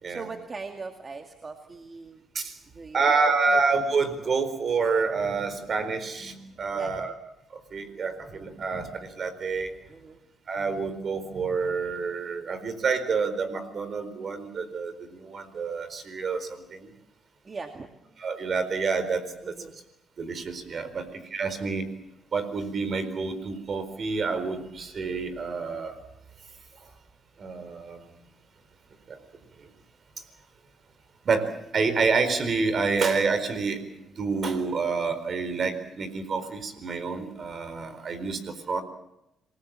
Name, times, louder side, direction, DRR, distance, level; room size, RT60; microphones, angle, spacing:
voice 1, 0.1-2.2 2.7-3.6 6.7-7.2 9.9-10.2 17.4-17.9 19.4-19.8, right 4 dB, 35° right, 5 dB, 2.1 m, -40 dB
voice 2, 2.9-7.1 7.7-9.7 10.5-16.9 18.2-19.5 20.2-21.9 22.3-26.0 27.4-28.0 29.1-29.2 29.6-29.7 31.2-38.8, right 4 dB, 50° right, 11 dB, 4.3 m, -28 dB
27.0 x 20.5 x 7.5 m, 0.86 s
cardioid pair, 90°, 0 cm